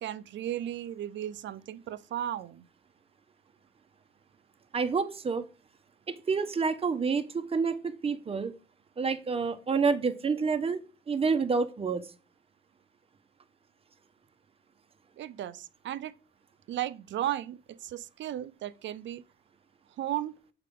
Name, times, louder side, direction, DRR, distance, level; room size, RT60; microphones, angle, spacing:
voice 1, 0.0-2.6 15.2-16.1 16.7-19.2 20.0-20.3, right 12 dB, 70° right, 0.6 m, -35 dB
voice 2, 4.7-5.5 6.1-8.6 9.0-12.1, right 5 dB, 30° right, 0.9 m, -28 dB
6.7 x 4.8 x 3.7 m
cardioid pair, 90°, 20 cm